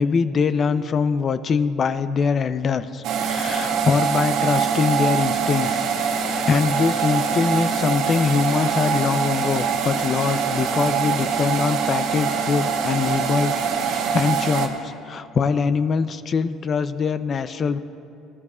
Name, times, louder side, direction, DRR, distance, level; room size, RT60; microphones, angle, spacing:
voice 1, 0.0-5.8 6.1-17.8, left 5 dB, 45° left, 13 dB, 0.5 m, -23 dB
sound 1, 3.0-14.7, right 6 dB, 70° right, 1.1 m, -24 dB
16.5 x 13.0 x 2.4 m, 2.5 s
supercardioid pair, 80°, 0 cm